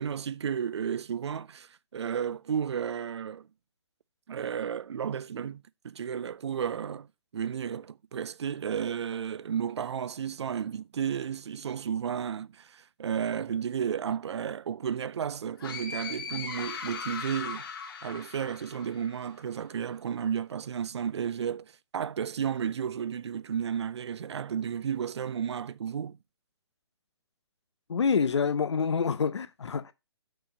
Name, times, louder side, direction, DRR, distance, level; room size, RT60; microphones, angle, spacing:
voice 1, 0.0-3.5 4.3-7.1 7.3-17.6 18.0-26.2, right 8 dB, 80° right, 0.5 m, -33 dB
sound 1, 15.6-19.3, left 6 dB, 55° left, 1.6 m, -39 dB
voice 2, 27.9-29.9, left 6 dB, 85° left, 0.8 m, -27 dB
6.2 x 4.7 x 5.2 m
hypercardioid pair, 155°, 14 cm